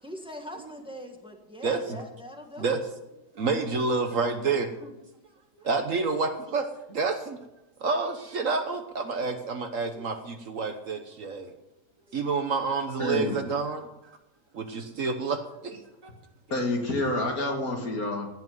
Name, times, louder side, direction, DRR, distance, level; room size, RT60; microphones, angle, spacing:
voice 1, 0.0-2.8 4.8-4.9 5.5-5.8 9.9-10.1 12.1-12.2, equal, 5° right, 3 dB, 1.6 m, -43 dB
voice 2, 1.6-2.0 2.6-2.8 3.3-4.7 5.6-7.5 7.8-11.5 12.1-13.9 14.5-16.1, right 4 dB, 55° right, 7 dB, 1.3 m, -29 dB
voice 3, 13.0-13.4 16.5-18.3, left 2 dB, 60° left, 2 dB, 2.6 m, -28 dB
16.5 x 5.9 x 9.2 m, 0.96 s
omnidirectional pair, 1.8 m